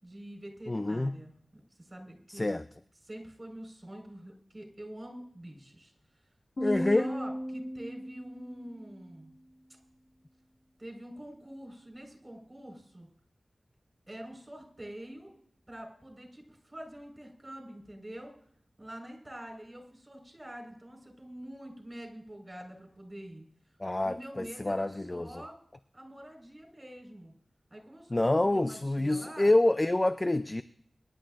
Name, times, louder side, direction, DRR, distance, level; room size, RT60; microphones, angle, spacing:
voice 1, 0.0-1.3 1.8-2.5 3.0-5.9 6.6-6.7 6.9-9.3 10.8-13.1 14.1-15.3 15.7-18.4 18.8-23.4 24.0-25.5 25.9-27.3 27.7-29.5, right 1 dB, 25° right, 2 dB, 4.6 m, -46 dB
voice 2, 0.7-1.1 2.3-2.6 6.6-7.1 23.8-25.4 28.1-30.6, left 2 dB, 30° left, 11 dB, 0.5 m, -27 dB
sound 1, 6.6-9.0, equal, 70° left, 4.6 m, -35 dB
24.0 x 11.0 x 2.5 m, 0.64 s
wide cardioid pair, 75°, 0 cm